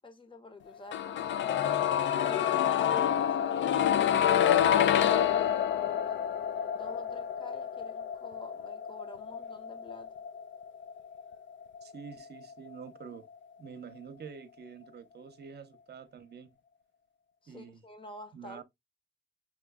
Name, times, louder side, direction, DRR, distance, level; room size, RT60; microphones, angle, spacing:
voice 1, 0.0-1.5 2.1-6.1 6.7-10.1 17.4-18.6, left 2 dB, 25° left, 1.0 m, -49 dB
sound 1, 0.9-12.7 13.0-13.1, left 10 dB, 70° left, 0.4 m, -28 dB
voice 2, 11.8-13.3 13.6-16.5 17.5-17.8 18.3-18.6, right 6 dB, 55° right, 0.8 m, -47 dB
6.1 x 3.1 x 2.2 m
wide cardioid pair, 125°, 20 cm